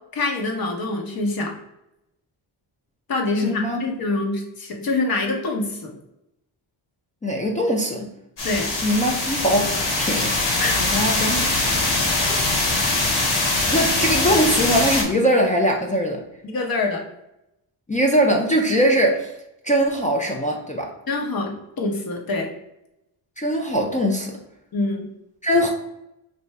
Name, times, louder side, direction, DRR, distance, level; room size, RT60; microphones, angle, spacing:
voice 1, 0.1-1.5 3.1-5.9 8.4-8.7 10.6-10.8 16.4-17.0 21.1-22.5 24.7-25.1, left 2 dB, 50° left, 1 dB, 0.9 m, -25 dB
voice 2, 3.4-3.8 7.2-8.1 8.8-10.4 10.8-11.4 11.8-12.4 12.6-12.9 13.6-16.2 17.9-19.3 19.6-20.9 23.4-24.4 25.4-25.7, equal, 20° left, 0 dB, 0.3 m, -21 dB
sound 1, 8.4-15.0, left 2 dB, 65° left, 1.3 m, -22 dB
3.2 x 2.6 x 4.5 m, 0.86 s
wide cardioid pair, 170°, 47 cm